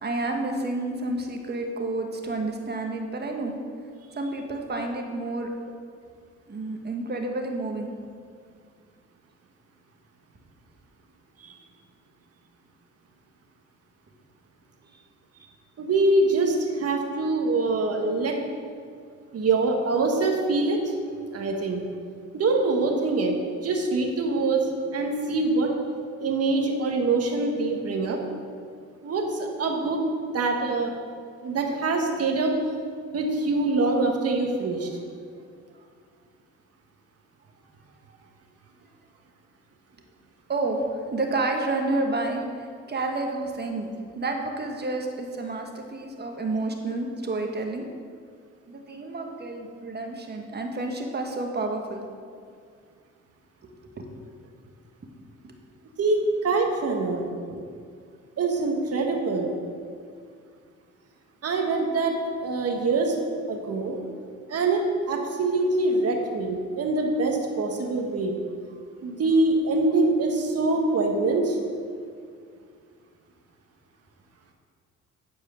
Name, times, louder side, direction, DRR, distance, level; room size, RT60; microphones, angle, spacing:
voice 1, 0.0-3.5 4.2-5.5 6.5-7.9 40.5-47.9 48.7-52.0 53.6-54.1 57.5-57.6, right 2 dB, 35° right, 3 dB, 1.4 m, -30 dB
voice 2, 15.8-18.4 19.3-20.9 21.3-21.8 22.3-23.4 23.6-25.8 26.2-28.2 29.0-30.0 30.3-30.9 31.4-32.5 33.1-34.9 56.0-57.3 58.4-59.5 61.4-62.1 62.4-63.1 63.5-64.0 64.5-68.3 69.0-71.6, right 3 dB, 55° right, 2 dB, 1.5 m, -24 dB
10.5 x 4.8 x 6.4 m, 2.2 s
cardioid pair, 90°, 30 cm